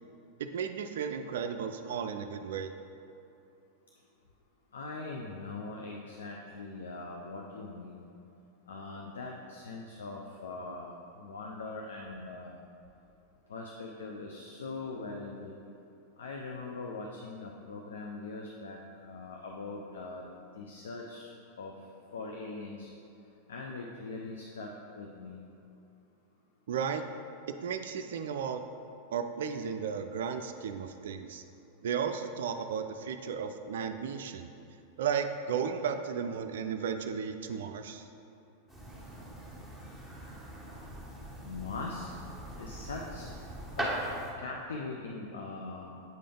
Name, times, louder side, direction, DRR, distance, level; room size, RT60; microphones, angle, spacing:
voice 1, 0.4-2.7 26.7-27.0 27.6-28.6 29.1-31.4 31.8-34.5 35.0-38.0, right 7 dB, 60° right, 7 dB, 0.3 m, -34 dB
voice 2, 4.7-8.1 8.7-12.6 13.5-15.6 16.2-20.3 20.6-21.3 21.6-21.7 22.1-22.9 23.5-25.4 41.4-42.2 42.6-43.3 43.8-43.9 44.4-45.9, left 3 dB, 65° left, 0 dB, 0.5 m, -41 dB
sound 1, 38.7-44.3, right 1 dB, 10° left, 1.5 m, -40 dB
7.8 x 5.0 x 3.7 m, 2.7 s
figure-of-eight pair, 90°, 0 cm